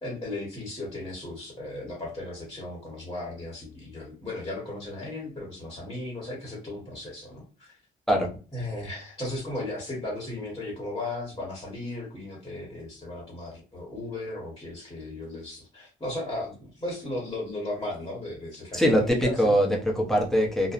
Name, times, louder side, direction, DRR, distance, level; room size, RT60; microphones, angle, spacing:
voice 1, 0.0-7.8 8.5-19.6, left 2 dB, 20° left, -3 dB, 1.1 m, -36 dB
voice 2, 18.7-20.7, equal, ahead, -1 dB, 0.7 m, -22 dB
2.6 x 2.1 x 2.4 m, 0.36 s
cardioid pair, 90°, 20 cm